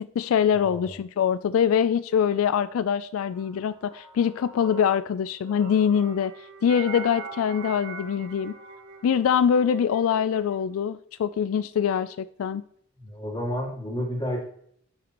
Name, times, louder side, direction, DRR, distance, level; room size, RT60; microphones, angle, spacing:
voice 1, 0.0-6.3 6.6-8.5 9.0-12.6, left 8 dB, 85° left, 15 dB, 0.3 m, -24 dB
voice 2, 0.6-0.9 13.0-14.4, equal, 20° left, -2 dB, 2.2 m, -31 dB
sound 1, 3.3-5.0 5.4-9.0, right 4 dB, 80° right, 1.5 m, -42 dB
Wind instrument woodwind instrument, 5.8-11.0, right 3 dB, 60° right, 1.3 m, -49 dB
9.1 x 6.0 x 2.9 m, 0.64 s
head